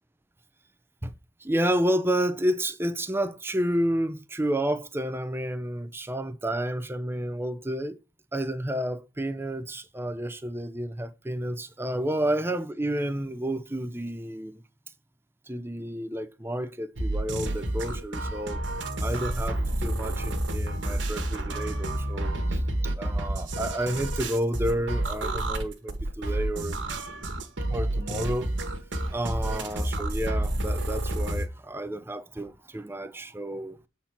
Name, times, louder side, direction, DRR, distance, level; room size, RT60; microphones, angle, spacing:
voice 1, 1.4-8.0 8.3-14.6 15.5-18.6 19.0-22.6 23.0-26.8 27.7-28.8 29.1-33.8, right 1 dB, 10° right, 0.6 m, -30 dB
sound 1, 17.0-31.5, right 1 dB, 75° right, 1.3 m, -29 dB
7.3 x 4.3 x 5.8 m
head